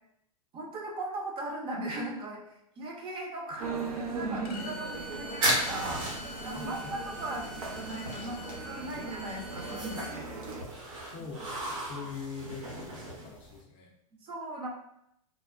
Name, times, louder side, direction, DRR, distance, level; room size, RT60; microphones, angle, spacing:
voice 1, 0.5-2.4 2.8-6.1 6.4-10.3 14.2-14.7, right 2 dB, 30° right, 0 dB, 0.6 m, -38 dB
sound 1, 3.6-10.6, right 3 dB, 75° right, 0.6 m, -39 dB
Bowed string instrument, 4.4-10.2, left 1 dB, 85° left, 0.5 m, -45 dB
sound 2, 4.9-13.6, right 1 dB, 60° right, 1.0 m, -36 dB
voice 2, 6.5-7.0 11.0-13.9, left 5 dB, 30° left, -1 dB, 0.4 m, -43 dB
3.2 x 2.0 x 2.4 m, 0.77 s
hypercardioid pair, 115°, 19 cm